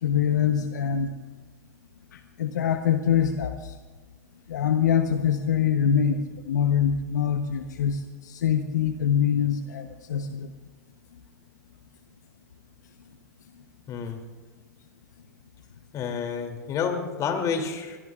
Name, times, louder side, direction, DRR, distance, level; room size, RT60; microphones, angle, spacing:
voice 1, 0.0-1.1 2.4-3.7 4.5-8.0 8.3-10.5, left 8 dB, 75° left, 7 dB, 1.0 m, -24 dB
voice 2, 13.9-14.2 15.9-18.0, left 6 dB, 35° left, 4 dB, 2.9 m, -29 dB
23.5 x 22.0 x 2.5 m, 1.4 s
hypercardioid pair, 100°, 10 cm